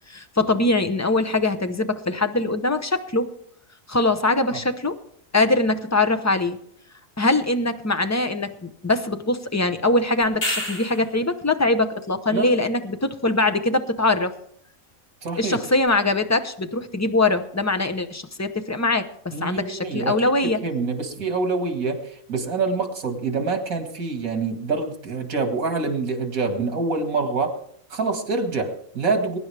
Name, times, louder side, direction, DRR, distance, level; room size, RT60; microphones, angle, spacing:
voice 1, 0.1-3.3 3.9-4.9 5.3-6.6 7.2-14.3 15.4-20.6, left 2 dB, 15° left, 9 dB, 0.5 m, -22 dB
sound 1, 10.2-11.2 15.9-16.0, left 1 dB, 55° left, 3.8 m, -28 dB
voice 2, 15.2-15.6 19.3-20.2 20.4-27.6 27.9-29.4, right 4 dB, 80° right, 6 dB, 2.3 m, -26 dB
22.0 x 10.5 x 3.4 m, 0.65 s
omnidirectional pair, 1.4 m